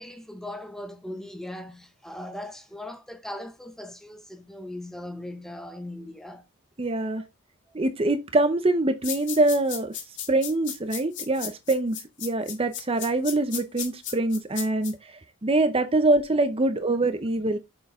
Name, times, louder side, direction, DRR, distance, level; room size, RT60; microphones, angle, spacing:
voice 1, 0.0-6.4 7.7-7.8, left 1 dB, ahead, 0.9 m, -39 dB
voice 2, 6.8-7.2 7.7-10.0 10.3-15.0 15.4-17.6, right 2 dB, 25° right, 0.7 m, -24 dB
sound 1, 9.0-14.9, left 9 dB, 55° left, 1.9 m, -35 dB
7.1 x 6.2 x 3.6 m
head